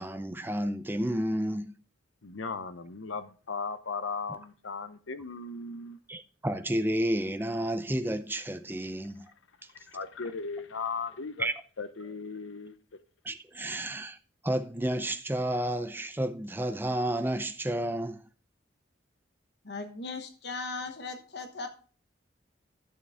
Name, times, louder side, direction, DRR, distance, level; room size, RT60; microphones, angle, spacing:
voice 1, 0.0-1.7 6.1-9.3 11.4-11.5 13.2-14.2 14.4-18.2, right 1 dB, 10° right, 0.5 m, -31 dB
voice 2, 2.2-6.0 9.9-11.5 11.8-12.7, left 4 dB, 85° left, 0.8 m, -37 dB
voice 3, 19.6-21.7, left 3 dB, 55° left, 1.2 m, -38 dB
11.0 x 6.7 x 3.6 m
head